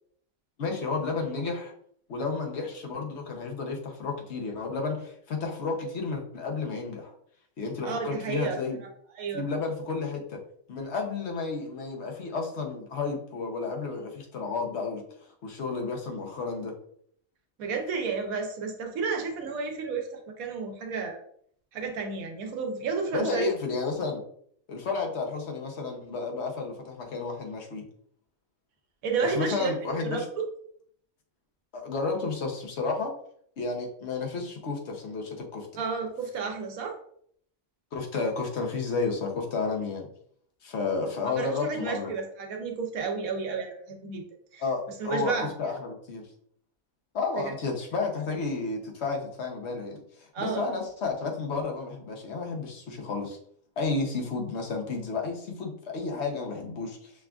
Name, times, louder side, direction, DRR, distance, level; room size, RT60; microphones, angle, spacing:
voice 1, 0.6-1.7 2.1-7.1 7.6-8.8 9.3-10.4 10.7-15.0 15.4-16.7 23.1-24.2 24.7-27.8 29.2-30.2 31.7-33.1 33.6-35.7 37.9-40.1 40.6-42.1 44.6-46.2 47.1-53.4 53.8-57.1, left 4 dB, 60° left, 2 dB, 1.0 m, -32 dB
voice 2, 7.8-8.9 9.1-9.4 17.6-21.2 21.7-23.5 29.0-29.7 30.0-30.2 35.8-37.0 41.4-44.2 44.5-44.6 45.0-45.5 47.4-47.5 50.3-50.7, right 5 dB, 85° right, 3 dB, 1.2 m, -31 dB
5.8 x 2.4 x 2.3 m, 0.64 s
omnidirectional pair, 1.4 m